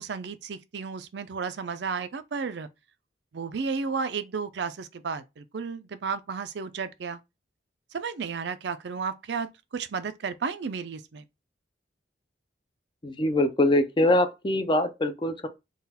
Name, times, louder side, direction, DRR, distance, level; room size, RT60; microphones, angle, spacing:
voice 1, 0.0-2.7 3.3-7.2 7.9-11.2, right 5 dB, 65° right, 0.5 m, -33 dB
voice 2, 13.0-15.5, left 1 dB, 25° left, 0.5 m, -23 dB
3.8 x 2.4 x 4.1 m
head